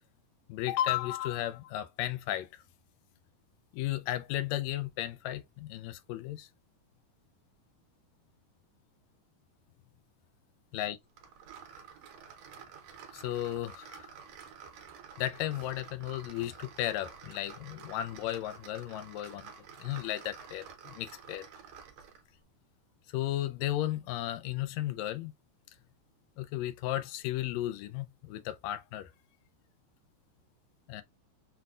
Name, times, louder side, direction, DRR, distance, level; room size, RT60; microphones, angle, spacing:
voice 1, 0.5-2.6 3.7-6.5 10.7-11.0 13.1-14.1 15.2-19.5 19.8-21.5 23.1-25.3 26.4-29.1 30.9-31.0, left 13 dB, 80° left, 1.6 m, -34 dB
sound 1, 11.2-22.3, right 7 dB, 70° right, 1.7 m, -50 dB
5.8 x 2.2 x 2.4 m
omnidirectional pair, 3.5 m